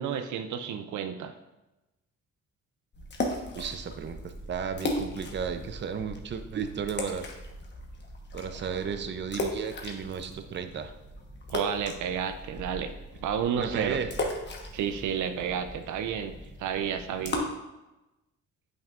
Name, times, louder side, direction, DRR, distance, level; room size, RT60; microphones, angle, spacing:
voice 1, 0.0-1.3 11.5-12.9 13.2-14.0 14.7-17.5, right 8 dB, 75° right, 8 dB, 0.6 m, -31 dB
sound 1, 2.9-17.4, left 1 dB, 35° left, 1.2 m, -37 dB
voice 2, 3.5-7.3 8.3-10.9 13.6-14.1, right 7 dB, 35° right, 7 dB, 0.6 m, -34 dB
8.7 x 5.5 x 2.5 m, 1.0 s
cardioid pair, 90°, 30 cm